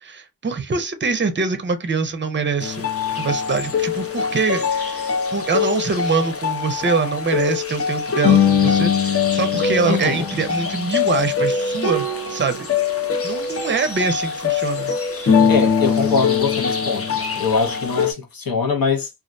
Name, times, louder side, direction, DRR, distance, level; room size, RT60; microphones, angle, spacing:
voice 1, 0.0-12.7 13.2-15.0 15.4-15.6, right 4 dB, 30° right, 0.5 m, -24 dB
sound 1, 2.6-18.1, left 6 dB, 40° left, 0.6 m, -22 dB
voice 2, 9.8-10.3 15.5-17.1 17.4-19.1, left 5 dB, 65° left, 0.8 m, -22 dB
2.4 x 2.1 x 2.5 m
wide cardioid pair, 60°, 37 cm